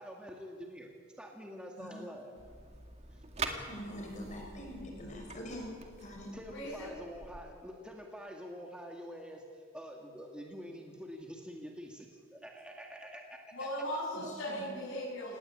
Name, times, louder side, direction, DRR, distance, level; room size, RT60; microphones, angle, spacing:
voice 1, 0.0-2.4 3.1-3.2 6.3-13.7, equal, 5° right, 1 dB, 2.0 m, -46 dB
sound 1, 2.4-7.4, right 3 dB, 30° right, 2.1 m, -44 dB
voice 2, 3.7-5.7 6.0-6.3 14.5-14.6, equal, 35° left, 1 dB, 6.0 m, -44 dB
voice 3, 6.5-6.9 13.5-15.4, equal, 60° left, -6 dB, 7.2 m, -38 dB
29.0 x 18.5 x 8.7 m, 2.1 s
head